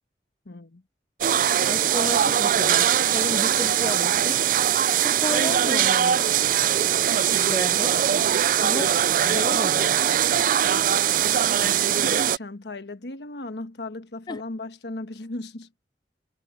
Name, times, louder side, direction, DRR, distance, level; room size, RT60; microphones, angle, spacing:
voice 1, 0.4-0.8 11.6-15.7, left 2 dB, 70° left, 1.3 m, -36 dB
sound 1, 1.2-12.4, right 10 dB, 50° right, 0.4 m, -21 dB
voice 2, 1.6-4.4 5.0-6.3 7.0-8.0 8.6-10.2 14.3-14.4, left 2 dB, 25° left, 0.4 m, -33 dB
head